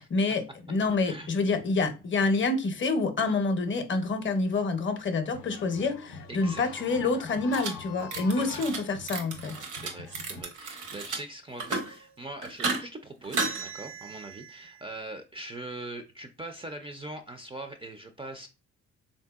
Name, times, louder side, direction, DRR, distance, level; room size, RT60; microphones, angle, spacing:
voice 1, 0.0-9.6, left 3 dB, 40° left, 0.6 m, -27 dB
sound 1, 5.3-10.4, left 5 dB, 85° left, 0.5 m, -44 dB
voice 2, 6.3-7.0 8.4-8.6 9.8-18.5, right 2 dB, 20° right, 0.3 m, -42 dB
sound 2, 7.5-7.7 8.0-8.8 9.1-11.2 11.5-12.0 12.4-12.8 13.2-14.7, right 3 dB, 80° right, 0.9 m, -34 dB
3.3 x 2.7 x 2.3 m
cardioid pair, 90°, 30 cm